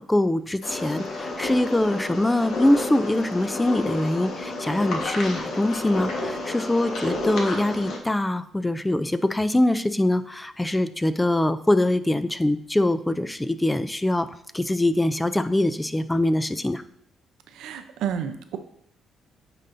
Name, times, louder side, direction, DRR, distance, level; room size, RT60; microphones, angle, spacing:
voice 1, 0.0-14.3 14.5-16.8, left 1 dB, 10° left, 12 dB, 0.4 m, -23 dB
sound 1, 0.6-8.0, left 2 dB, 65° left, 1.3 m, -31 dB
voice 2, 17.5-18.6, right 8 dB, 85° right, 8 dB, 0.5 m, -31 dB
8.9 x 4.1 x 2.6 m, 0.71 s
cardioid pair, 90°, 0 cm